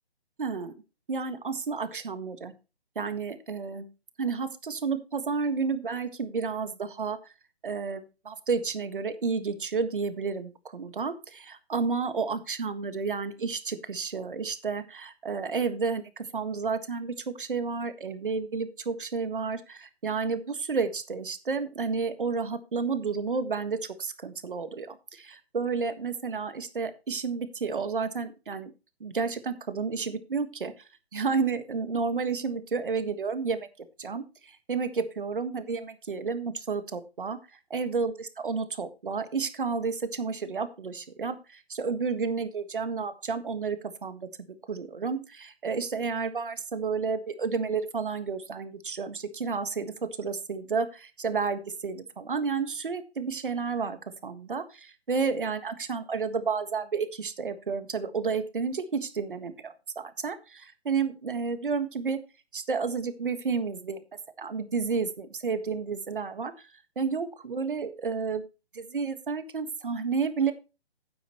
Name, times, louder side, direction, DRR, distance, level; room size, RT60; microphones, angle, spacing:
voice 1, 0.4-0.7 1.1-2.5 2.9-3.9 4.2-7.2 7.6-28.7 29.0-30.7 31.1-33.7 34.0-37.4 37.7-38.1 38.4-44.3 44.7-62.2 62.5-64.0 64.4-66.7 66.9-68.4 68.9-70.5, right 5 dB, 55° right, 11 dB, 1.6 m, -31 dB
12.5 x 9.5 x 3.0 m, 0.30 s
figure-of-eight pair, 140°, 32 cm